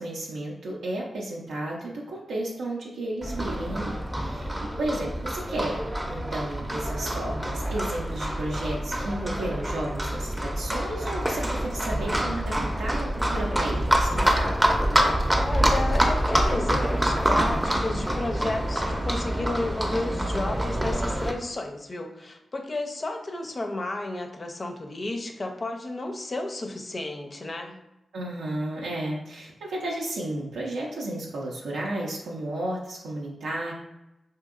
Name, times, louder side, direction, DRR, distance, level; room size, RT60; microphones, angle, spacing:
voice 1, 0.0-14.7 28.1-33.7, right 1 dB, 90° right, -3 dB, 0.4 m, -33 dB
Livestock farm animals working animals, 3.2-21.3, right 1 dB, 15° right, 0.5 m, -26 dB
voice 2, 15.5-27.8, left 2 dB, 45° left, 4 dB, 0.4 m, -32 dB
2.7 x 2.7 x 2.4 m, 0.94 s
cardioid pair, 45°, 0 cm